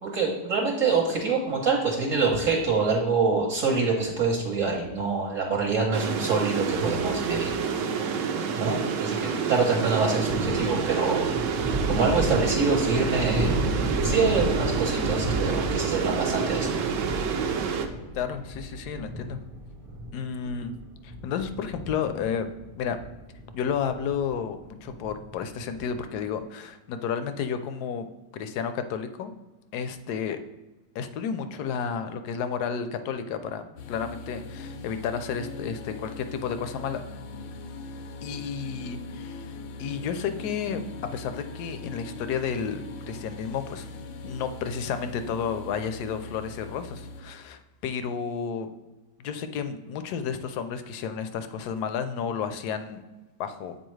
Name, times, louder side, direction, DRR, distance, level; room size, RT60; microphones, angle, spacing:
voice 1, 0.0-7.5 8.6-11.3 11.9-13.5 14.0-16.7, right 4 dB, 55° right, -1 dB, 1.1 m, -25 dB
sound 1, 5.9-17.9, right 6 dB, 70° right, 0.7 m, -28 dB
sound 2, 10.2-26.1, right 1 dB, 25° right, 0.7 m, -33 dB
voice 2, 18.1-19.4 20.1-20.7 21.0-22.5 22.8-23.0 23.5-28.1 28.3-29.3 29.7-30.4 30.9-37.0 38.2-40.8 41.1-43.9 44.2-48.7 49.2-53.0 53.4-53.7, left 7 dB, 75° left, 10 dB, 1.0 m, -32 dB
sound 3, 33.8-47.2, left 3 dB, 90° left, 1.3 m, -40 dB
7.7 x 4.2 x 3.1 m, 1.1 s
omnidirectional pair, 1.9 m